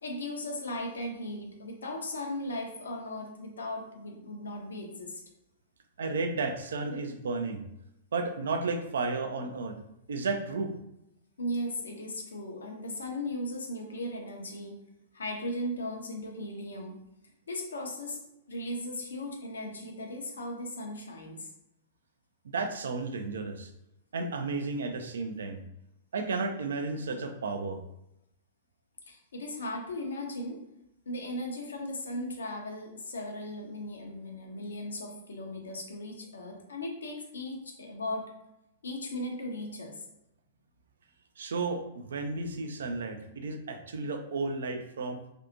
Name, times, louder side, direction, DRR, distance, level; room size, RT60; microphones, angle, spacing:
voice 1, 0.0-5.2 11.4-14.8 15.1-17.0 17.5-18.2 18.5-21.5 29.1-30.6 31.1-38.3 38.8-40.0, left 1 dB, 70° left, 2 dB, 0.5 m, -37 dB
voice 2, 6.0-7.6 8.1-9.8 10.1-10.7 22.5-23.7 24.1-25.6 26.1-27.8 41.4-45.2, right 3 dB, 65° right, 6 dB, 0.3 m, -33 dB
2.6 x 2.3 x 2.5 m, 0.85 s
figure-of-eight pair, 105°, 0 cm